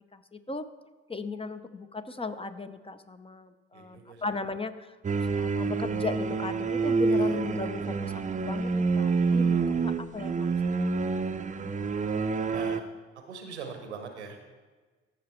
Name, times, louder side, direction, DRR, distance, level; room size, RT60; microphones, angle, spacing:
voice 1, 0.1-0.7 1.1-4.9 5.3-10.9, left 3 dB, 15° left, 10 dB, 0.7 m, -36 dB
voice 2, 3.7-4.2 7.1-7.3 12.5-12.8 13.3-14.4, right 5 dB, 90° right, 5 dB, 1.0 m, -41 dB
sound 1, 5.0-12.8, right 4 dB, 25° right, 0.6 m, -27 dB
14.5 x 5.6 x 4.4 m, 1.3 s
figure-of-eight pair, 40°, 33 cm